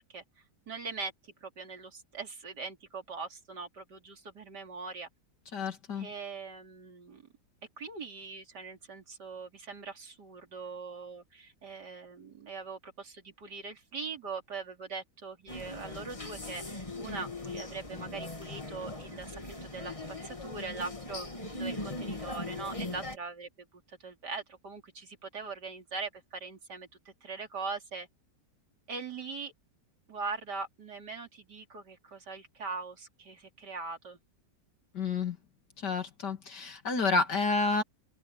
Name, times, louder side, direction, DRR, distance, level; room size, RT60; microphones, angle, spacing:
voice 1, 0.7-5.1 5.9-7.3 7.8-28.1 28.9-29.5 30.1-34.2, right 4 dB, 85° right, 3.4 m, -41 dB
voice 2, 5.5-6.1 34.9-35.4 35.8-37.8, left 4 dB, 85° left, 3.2 m, -30 dB
sound 1, 15.5-23.2, left 2 dB, 20° left, 2.0 m, -40 dB
open air
omnidirectional pair, 1.8 m